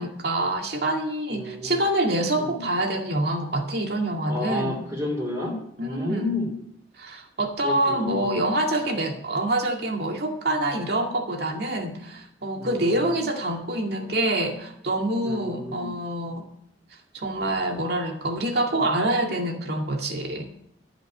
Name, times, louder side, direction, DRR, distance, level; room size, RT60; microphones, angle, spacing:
voice 1, 0.0-4.8 5.8-6.4 7.0-16.5 17.1-20.5, right 1 dB, 60° right, 2 dB, 2.2 m, -26 dB
voice 2, 1.3-1.8 2.4-2.6 4.3-6.6 7.6-8.4 12.6-13.2 15.2-15.9, left 2 dB, 15° right, -6 dB, 3.3 m, -31 dB
14.5 x 5.3 x 9.4 m, 0.71 s
head